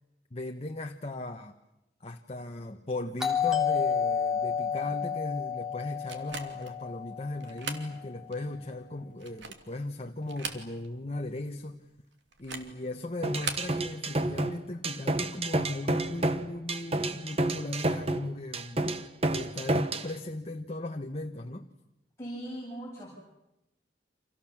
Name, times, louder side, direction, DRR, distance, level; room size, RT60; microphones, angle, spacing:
voice 1, 0.3-1.5 2.0-11.8 12.4-21.7, left 2 dB, 35° left, 1.2 m, -37 dB
Doorbell, 3.2-7.8, left 7 dB, ahead, 3.3 m, -30 dB
sound 1, 6.1-6.8 7.4-7.9 8.3-8.4 9.1-9.7 10.2-11.0 11.3-11.4 12.3-12.8 13.3-13.7, right 5 dB, 85° right, 2.8 m, -39 dB
sound 2, 13.2-20.1, right 2 dB, 35° right, 1.2 m, -30 dB
voice 2, 22.2-23.1, right 1 dB, 15° left, 7.4 m, -39 dB
29.5 x 27.0 x 7.4 m
head